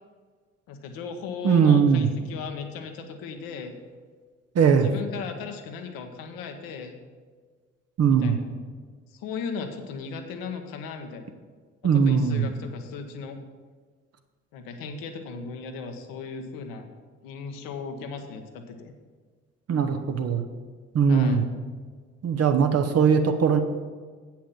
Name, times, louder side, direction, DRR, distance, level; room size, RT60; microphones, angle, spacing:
voice 1, 0.7-3.8 4.6-7.0 8.1-8.5 9.1-11.3 11.8-13.4 14.5-16.9 17.2-18.9 21.1-21.4, left 5 dB, 60° left, 6 dB, 1.1 m, -36 dB
voice 2, 1.4-2.1 4.5-4.9 8.0-8.4 11.8-12.5 19.7-20.4 20.9-21.4 22.2-23.6, right 6 dB, 40° right, 7 dB, 0.9 m, -20 dB
8.5 x 5.9 x 7.2 m, 1.5 s
figure-of-eight pair, 40°, 39 cm